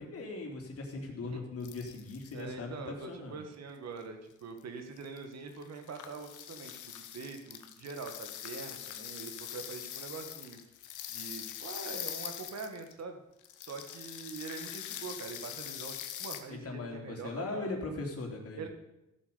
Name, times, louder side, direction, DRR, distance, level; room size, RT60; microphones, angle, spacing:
voice 1, 0.0-3.4 16.5-18.7, left 3 dB, 50° left, 1 dB, 3.2 m, -39 dB
sound 1, 1.6-2.4 4.0-4.1 4.6-4.7 5.0-5.2 5.5-13.0 13.4-16.4, left 11 dB, 85° left, 1.3 m, -43 dB
voice 2, 2.3-10.6 11.1-13.2 13.6-17.7 18.6-18.7, right 4 dB, 60° right, 6 dB, 1.8 m, -44 dB
14.5 x 7.3 x 6.9 m, 0.92 s
cardioid pair, 90°, 30 cm